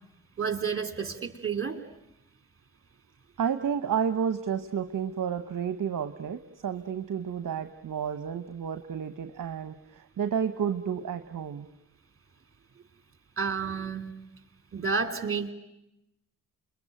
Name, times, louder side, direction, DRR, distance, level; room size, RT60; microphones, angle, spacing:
voice 1, 0.4-1.8 13.4-14.1 14.7-15.5, right 5 dB, 35° right, 7 dB, 2.8 m, -30 dB
voice 2, 3.4-11.7, right 7 dB, 50° right, 9 dB, 1.1 m, -31 dB
28.0 x 22.0 x 9.1 m, 0.89 s
supercardioid pair, 50°, 40 cm